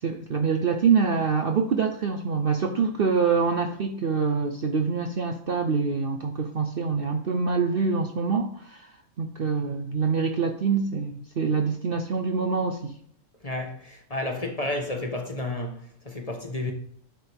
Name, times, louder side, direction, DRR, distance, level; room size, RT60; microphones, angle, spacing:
voice 1, 0.0-13.0, right 5 dB, 50° right, 0.8 m, -25 dB
voice 2, 13.4-16.7, left 2 dB, 25° left, 1.2 m, -31 dB
10.5 x 7.3 x 3.5 m
omnidirectional pair, 1.5 m